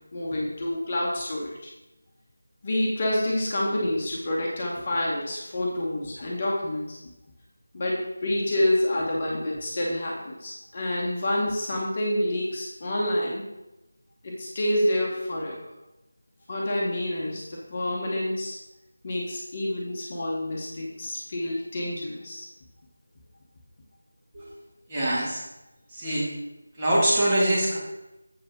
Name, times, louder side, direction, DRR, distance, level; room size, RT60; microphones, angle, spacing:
voice 1, 0.1-1.7 2.6-7.0 7.7-13.4 14.2-15.6 16.5-18.6 19.0-22.5, left 1 dB, 30° left, -3 dB, 1.4 m, -28 dB
voice 2, 24.9-25.4 25.9-26.3 26.8-27.8, right 1 dB, 20° right, -7 dB, 2.2 m, -23 dB
7.6 x 4.8 x 5.9 m, 0.94 s
figure-of-eight pair, 165°, 0 cm